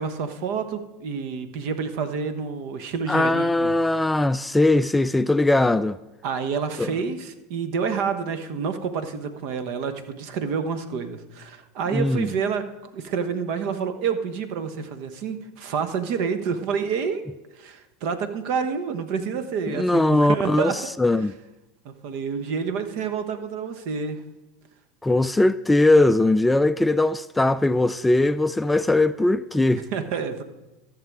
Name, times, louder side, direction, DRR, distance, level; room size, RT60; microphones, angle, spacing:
voice 1, 0.0-3.7 6.2-12.6 12.9-17.2 17.6-21.2 21.8-24.2 29.7-30.4, right 6 dB, 60° right, 1.2 m, -28 dB
voice 2, 3.1-6.0 6.8-6.9 11.9-12.3 19.7-20.7 21.0-21.3 25.0-29.8, left 2 dB, 10° left, 0.3 m, -20 dB
14.5 x 6.8 x 4.7 m
hypercardioid pair, 85°, 0 cm